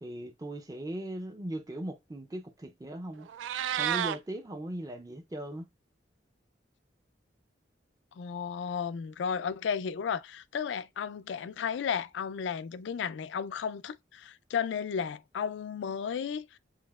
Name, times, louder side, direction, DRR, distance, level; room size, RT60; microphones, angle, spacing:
voice 1, 0.0-3.3 3.7-5.7, right 1 dB, 20° right, 0.4 m, -38 dB
Meow, 3.2-4.2, right 10 dB, 85° right, 0.3 m, -30 dB
voice 2, 8.2-16.6, left 7 dB, 75° left, 0.3 m, -34 dB
7.4 x 2.7 x 2.3 m
head